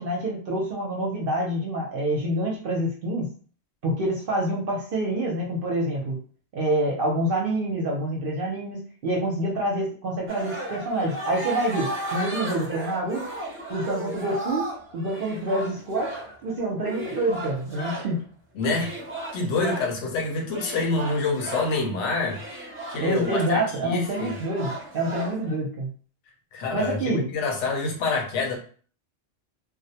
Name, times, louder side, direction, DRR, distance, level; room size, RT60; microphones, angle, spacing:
voice 1, 0.0-3.3 3.8-6.2 6.5-13.2 13.7-14.7 14.9-18.2 23.0-25.9 26.7-27.3, right 1 dB, 55° right, -2 dB, 0.7 m, -27 dB
sound 1, 10.3-18.2 18.6-20.0 20.5-25.5, right 1 dB, 20° right, 0.4 m, -35 dB
voice 2, 18.5-18.9 19.3-22.4 22.9-24.3 26.5-28.6, left 3 dB, 75° left, 1 dB, 0.9 m, -27 dB
2.4 x 2.1 x 2.7 m, 0.42 s
omnidirectional pair, 1.2 m